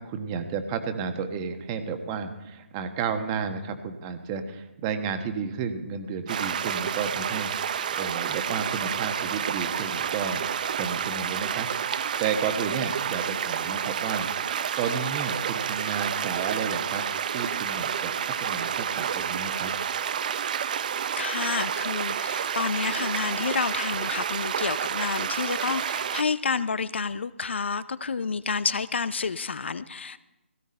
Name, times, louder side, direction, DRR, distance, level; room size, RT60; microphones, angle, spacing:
voice 1, 0.0-10.5 10.7-14.3 14.8-19.7, right 6 dB, 20° right, 7 dB, 1.3 m, -32 dB
sound 1, 6.3-26.2, right 8 dB, 40° right, 0.6 m, -29 dB
voice 2, 21.2-30.2, left 5 dB, 60° left, 15 dB, 0.7 m, -29 dB
17.0 x 16.0 x 4.3 m, 0.97 s
figure-of-eight pair, 150°, 7 cm